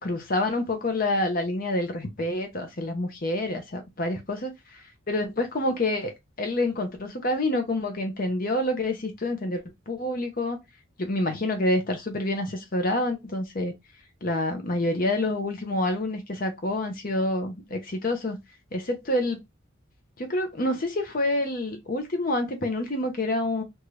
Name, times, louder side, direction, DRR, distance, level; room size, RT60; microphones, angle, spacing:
voice 1, 0.0-10.6 11.0-13.7 14.2-18.4 18.7-19.4 20.2-23.6, left 1 dB, 45° left, 0.7 m, -27 dB
2.8 x 2.4 x 3.1 m
head